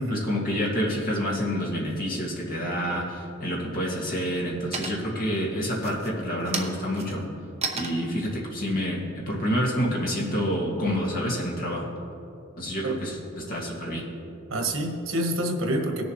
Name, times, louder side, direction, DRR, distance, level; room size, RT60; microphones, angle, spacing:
voice 1, 0.0-7.2 7.7-11.8 12.6-14.0, equal, 45° left, -3 dB, 2.2 m, -28 dB
sound 1, 3.1-3.6 4.1-4.5 4.7-5.3 5.7-10.2, right 4 dB, 30° right, 0.8 m, -35 dB
voice 2, 14.5-16.1, right 1 dB, 90° right, 3 dB, 1.4 m, -27 dB
18.5 x 7.0 x 3.2 m, 2.7 s
head